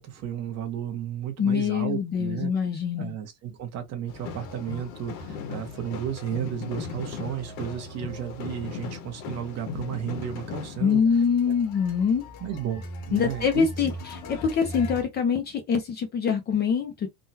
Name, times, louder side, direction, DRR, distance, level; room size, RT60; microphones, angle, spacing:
voice 1, 0.0-2.5 3.0-11.0 11.5-11.6 12.4-13.9, right 9 dB, 40° right, 0.9 m, -33 dB
voice 2, 1.4-3.1 10.8-12.2 13.1-13.9 14.3-17.1, left 6 dB, 25° left, 0.4 m, -24 dB
sound 1, 4.1-15.0, left 4 dB, 65° left, 1.0 m, -38 dB
3.7 x 2.2 x 2.7 m
cardioid pair, 175°, 38 cm